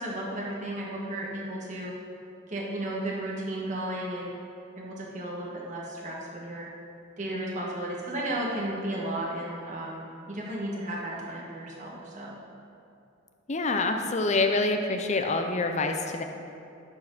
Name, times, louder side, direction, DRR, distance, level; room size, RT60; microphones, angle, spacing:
voice 1, 0.0-1.9 2.5-4.3 4.8-6.7 7.2-12.4, right 1 dB, 40° right, -4 dB, 1.4 m, -34 dB
voice 2, 13.5-16.2, left 3 dB, 35° left, 5 dB, 0.6 m, -26 dB
12.0 x 4.5 x 6.1 m, 2.6 s
head